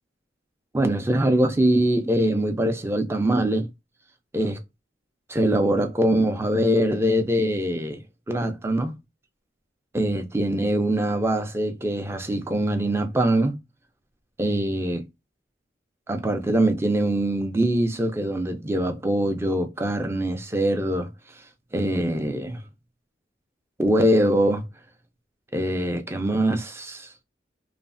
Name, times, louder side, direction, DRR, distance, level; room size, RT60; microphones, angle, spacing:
voice 1, 0.7-3.7 4.3-4.6 5.3-9.0 9.9-13.6 14.4-15.0 16.1-21.1 21.7-22.6 23.8-24.6 25.5-27.1, right 1 dB, 15° right, 0.4 m, -23 dB
3.1 x 2.0 x 2.5 m
head